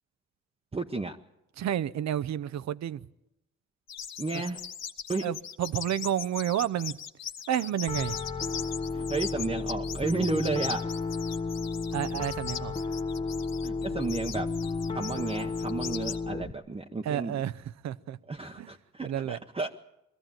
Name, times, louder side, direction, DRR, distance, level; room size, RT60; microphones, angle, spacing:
voice 1, 0.7-1.2 4.2-4.6 5.1-5.2 8.9-10.9 13.6-14.5 14.9-17.4 18.3-19.7, right 3 dB, 20° right, 1.0 m, -32 dB
voice 2, 1.6-3.0 4.3-4.4 5.2-7.0 7.5-8.2 11.9-12.8 17.0-17.6 17.8-18.2 18.6-18.7 19.0-19.4, right 10 dB, 65° right, 0.8 m, -30 dB
sound 1, 3.9-16.2, left 8 dB, 60° left, 1.2 m, -40 dB
Piano, 7.9-16.5, left 4 dB, 15° left, 0.9 m, -33 dB
22.0 x 14.5 x 9.0 m
cardioid pair, 90°, 30 cm